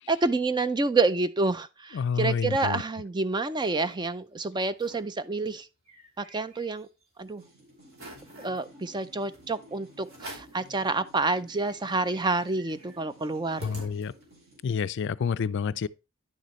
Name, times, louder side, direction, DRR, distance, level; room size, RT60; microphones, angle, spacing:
voice 1, 0.1-5.7 6.2-6.9 7.2-7.4 8.4-13.7, right 3 dB, 20° right, 0.4 m, -28 dB
voice 2, 1.9-2.8 13.6-14.1 14.6-15.9, left 6 dB, 60° left, 0.4 m, -28 dB
sound 1, 3.1-4.0 4.4-4.5 4.7-5.1 5.5-7.0 7.4-7.5 7.9-8.6 9.3-9.5 10.1-10.6 11.1-11.2 11.4-14.4, right 1 dB, 80° right, 3.1 m, -47 dB
sound 2, 7.2-14.7, equal, 50° right, 3.4 m, -54 dB
10.5 x 6.6 x 3.1 m
head